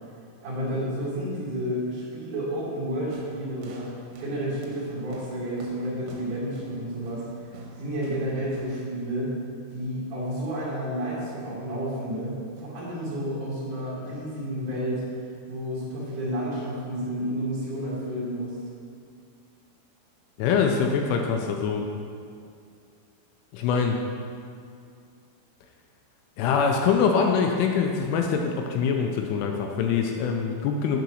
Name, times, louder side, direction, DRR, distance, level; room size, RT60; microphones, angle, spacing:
voice 1, 0.4-3.9 4.2-7.3 7.8-9.4 9.7-15.0 15.5-18.6, equal, 55° right, -10 dB, 2.6 m, -31 dB
sound 1, 3.1-8.9, left 2 dB, 80° right, 3.4 m, -45 dB
voice 2, 20.4-21.9 23.5-24.0 26.4-31.0, left 6 dB, 85° left, 3 dB, 2.8 m, -24 dB
9.1 x 4.0 x 6.2 m, 2.3 s
omnidirectional pair, 6.0 m